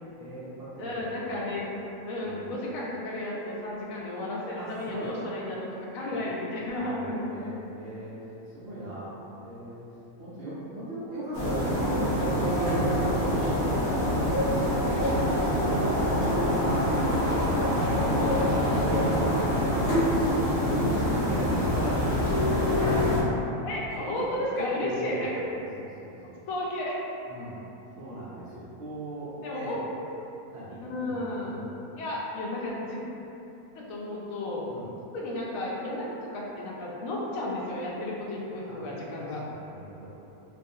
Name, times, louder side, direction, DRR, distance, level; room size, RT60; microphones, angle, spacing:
voice 1, 0.0-1.4 2.2-2.5 4.6-5.1 6.7-8.1 8.5-9.1 9.4-9.8 10.2-14.6 15.2-17.8 18.3-18.6 18.8-19.7 20.7-22.4 22.7-23.2 24.0-24.3 24.6-26.1 27.3-27.6 28.0-29.8 30.5-31.7 34.7-34.9 38.6-38.8 39.2-40.1, right 1 dB, 70° right, -9 dB, 0.5 m, -37 dB
voice 2, 0.8-1.7 2.0-7.2 13.0-13.2 17.8-18.2 18.7-19.1 23.6-25.3 26.5-27.0 29.4-29.8 30.8-31.6 32.0-33.0 33.7-34.6 35.1-36.1 36.3-39.4, left 1 dB, 70° left, -4 dB, 0.9 m, -33 dB
sound 1, 11.3-23.2, left 1 dB, 15° left, 0.4 m, -25 dB
2.4 x 2.3 x 2.7 m, 2.9 s
omnidirectional pair, 1.6 m